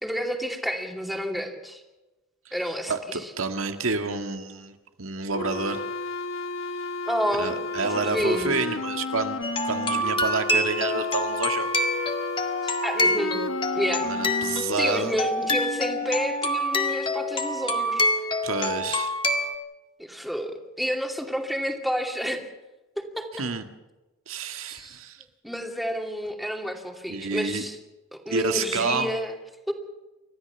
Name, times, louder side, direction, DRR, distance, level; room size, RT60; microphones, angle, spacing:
voice 1, 0.0-1.8 2.5-2.9 7.1-8.6 12.6-13.4 13.7-14.0 14.8-18.1 20.0-22.5 23.2-23.3 24.7-25.0 25.4-27.8 28.1-29.3 29.7-29.8, equal, ahead, 3 dB, 2.6 m, -29 dB
voice 2, 2.9-5.9 6.8-6.9 7.4-9.4 9.6-11.7 14.0-15.2 18.4-19.2 23.4-23.6 24.3-25.2 27.1-27.6 28.3-29.1, right 4 dB, 85° right, 6 dB, 1.8 m, -29 dB
sound 1, 5.3-14.6, left 3 dB, 70° left, 1.3 m, -32 dB
sound 2, 9.4-19.5, left 1 dB, 25° left, 1.9 m, -26 dB
29.5 x 14.0 x 7.1 m, 1.1 s
head